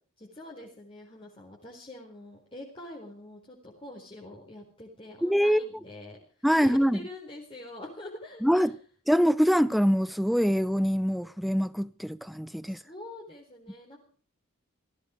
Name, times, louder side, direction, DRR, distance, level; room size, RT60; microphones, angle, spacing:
voice 1, 0.2-8.7 12.6-14.0, left 1 dB, 25° left, 4.2 m, -45 dB
voice 2, 5.2-5.7 6.4-7.0 8.4-8.7 9.1-12.8, equal, ahead, 0.7 m, -24 dB
18.0 x 15.0 x 5.0 m
head